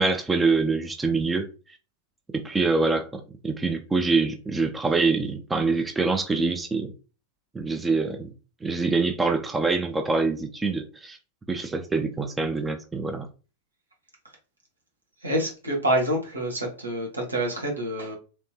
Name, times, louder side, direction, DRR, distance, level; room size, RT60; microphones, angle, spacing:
voice 1, 0.0-1.5 2.3-6.9 7.5-8.3 8.6-11.2 11.5-13.3, right 3 dB, 10° right, 0.4 m, -25 dB
voice 2, 15.2-18.2, right 1 dB, 80° right, 1.3 m, -27 dB
3.4 x 3.0 x 2.8 m
figure-of-eight pair, 90°, 0 cm